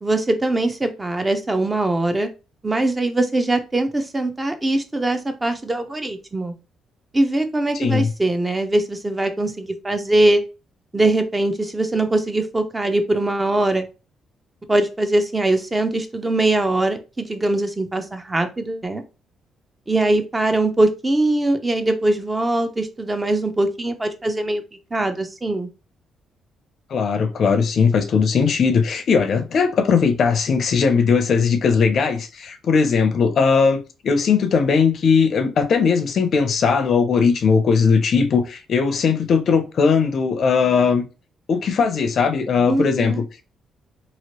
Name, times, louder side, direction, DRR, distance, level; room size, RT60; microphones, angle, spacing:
voice 1, 0.0-2.3 2.6-6.5 7.1-10.4 10.9-13.9 14.7-19.0 19.9-24.6 24.9-25.7 42.7-43.2, right 2 dB, 20° right, 0.6 m, -21 dB
voice 2, 7.7-8.1 26.9-41.0 41.5-43.2, left 5 dB, 60° left, 0.5 m, -18 dB
2.9 x 2.8 x 2.9 m
cardioid pair, 90°, 0 cm